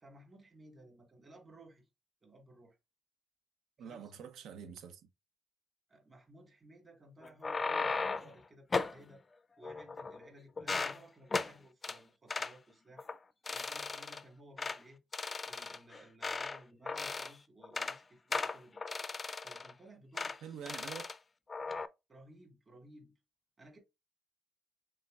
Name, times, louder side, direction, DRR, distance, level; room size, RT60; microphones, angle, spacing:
voice 1, 0.0-1.9 2.2-2.8 3.8-4.1 5.9-9.2 9.6-13.1 13.5-15.0 15.5-18.8 19.4-20.7 22.1-23.2 23.6-23.8, right 1 dB, 35° right, 1.9 m, -58 dB
voice 2, 3.8-5.0 20.4-21.1, right 7 dB, 80° right, 0.8 m, -46 dB
sound 1, 7.2-8.3 8.7-9.0 9.6-10.3 10.6-11.0 11.3-11.5 11.8-12.0 12.3-12.5 13.0-13.2 13.5-14.2 14.6-14.8 15.1-16.6 16.9-17.3 17.6-18.0 18.3-19.7 20.2-20.4 20.7-21.2 21.5-21.9, left 4 dB, 30° left, 0.4 m, -36 dB
5.6 x 3.5 x 2.4 m
cardioid pair, 90°, 0 cm